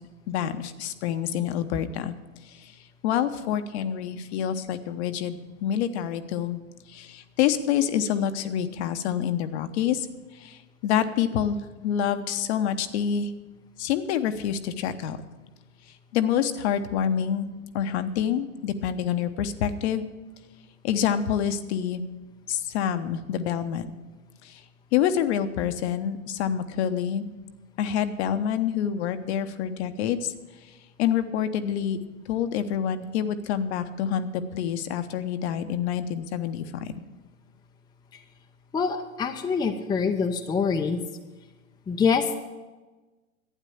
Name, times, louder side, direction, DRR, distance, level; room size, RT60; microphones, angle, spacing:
voice 1, 0.3-2.1 2.5-2.7 3.0-6.6 6.9-10.1 10.3-11.6 11.8-13.3 13.8-15.2 16.1-17.5 17.7-20.1 20.8-22.0 22.5-23.9 24.4-24.6 24.9-27.3 27.8-30.3 31.0-32.0 32.3-36.9, left 9 dB, 50° left, 10 dB, 1.0 m, -27 dB
voice 2, 38.7-41.0 41.9-42.4, left 5 dB, 10° left, 5 dB, 0.6 m, -25 dB
12.0 x 9.1 x 7.2 m, 1.2 s
hypercardioid pair, 105°, 41 cm